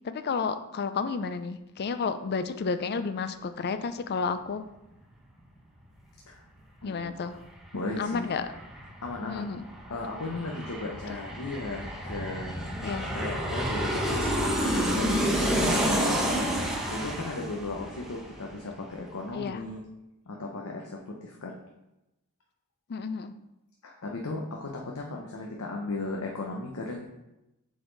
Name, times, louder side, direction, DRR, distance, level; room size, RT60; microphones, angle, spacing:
voice 1, 0.0-4.6 6.8-7.4 8.0-8.5 9.3-9.6 12.8-13.1 15.5-15.8 16.2-16.7 19.3-19.6 22.9-23.3, left 5 dB, 45° left, 11 dB, 0.4 m, -31 dB
voice 2, 6.8-7.2 7.7-8.4 9.0-9.5 9.9-12.6 13.1-15.1 16.9-19.8 20.3-21.6 23.8-27.1, left 2 dB, 70° left, 0 dB, 0.8 m, -36 dB
Aircraft, 7.3-7.4 7.6-18.9 19.2-19.3, equal, ahead, 0.9 m, -30 dB
7.7 x 4.1 x 3.9 m, 0.94 s
head